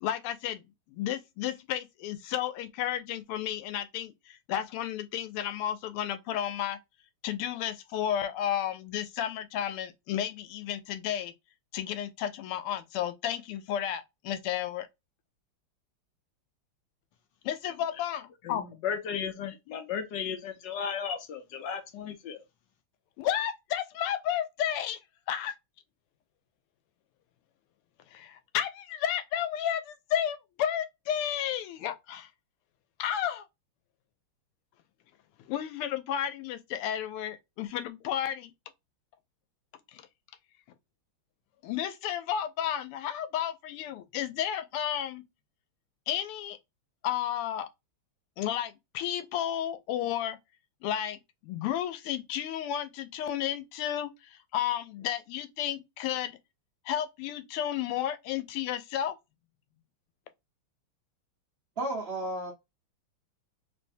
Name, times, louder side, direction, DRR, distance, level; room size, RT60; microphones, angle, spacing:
voice 1, 0.0-6.8 7.2-11.3 11.7-14.9 17.4-18.6 23.2-25.0 25.3-25.5 28.1-32.3 33.0-33.4 35.5-38.5 39.9-40.0 41.6-45.2 46.1-46.6 47.0-47.7 48.4-50.4 50.8-56.4 56.8-59.1, left 10 dB, 90° left, 1.6 m, -32 dB
voice 2, 18.4-22.4, left 7 dB, 70° left, 1.1 m, -35 dB
voice 3, 61.8-62.5, right 1 dB, 65° right, 0.6 m, -32 dB
3.3 x 3.2 x 2.6 m
omnidirectional pair, 2.4 m